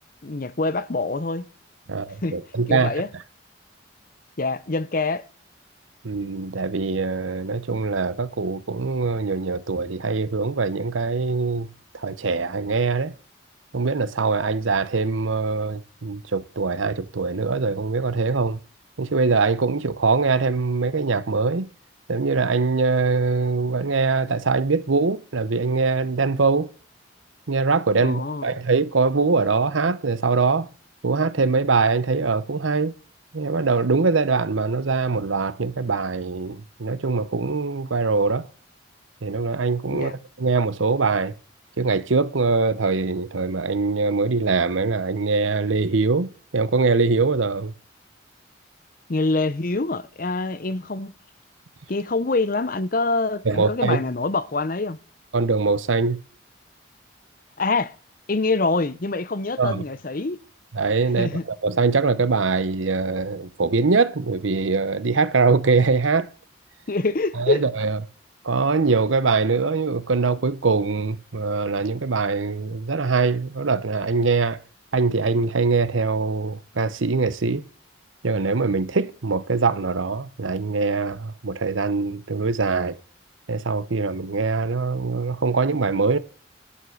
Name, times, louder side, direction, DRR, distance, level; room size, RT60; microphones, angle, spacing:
voice 1, 0.2-1.5 2.2-2.4 2.7-3.1 4.4-5.2 28.0-28.5 39.9-40.1 49.1-51.1 51.9-55.0 57.6-57.9 58.3-60.4 61.2-61.4 66.9-67.6, left 3 dB, 45° left, 0.7 m, -25 dB
voice 2, 1.9-2.9 6.0-11.7 11.9-13.1 13.7-18.6 19.0-21.7 22.1-26.7 27.5-30.7 31.0-32.9 33.3-38.5 39.2-41.3 41.8-47.7 53.4-54.0 55.3-56.2 59.6-59.8 60.7-66.3 67.4-68.0 68.4-74.6 74.9-77.6 78.2-83.0 83.5-86.2, right 4 dB, 85° right, 0.8 m, -23 dB
11.0 x 5.6 x 6.4 m
head